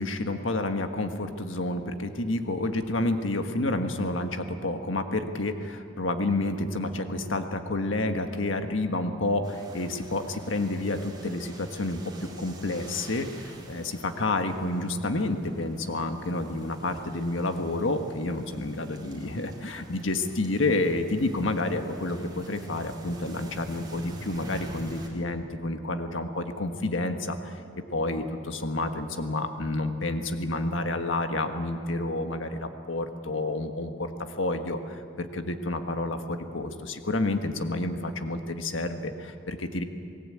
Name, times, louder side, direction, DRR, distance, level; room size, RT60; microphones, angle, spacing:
voice 1, 0.0-12.0 12.4-27.5 27.9-39.8, left 2 dB, 75° left, 6 dB, 1.5 m, -29 dB
sound 1, 9.4-25.1, right 1 dB, 20° right, 4.2 m, -46 dB
28.0 x 19.0 x 8.7 m, 2.5 s
head